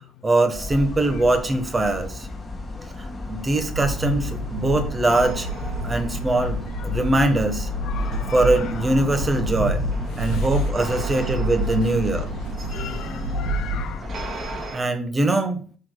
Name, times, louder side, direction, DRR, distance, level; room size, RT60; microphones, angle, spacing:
voice 1, 0.2-2.3 3.0-5.5 5.8-6.6 6.8-7.7 8.3-9.8 10.2-12.3 14.7-15.6, right 2 dB, 15° right, 1.3 m, -22 dB
sound 1, 0.5-14.7, left 2 dB, 15° left, 1.8 m, -34 dB
sound 2, 3.7-13.9, right 1 dB, 65° right, 1.8 m, -29 dB
sound 3, 5.1-7.1 8.0-14.8, right 3 dB, 45° right, 2.2 m, -40 dB
voice 2, 6.4-6.9 7.8-8.7 10.1-10.6 11.1-11.3 12.7-14.1, left 10 dB, 65° left, 0.6 m, -39 dB
13.0 x 6.5 x 2.2 m
cardioid pair, 170°, 0 cm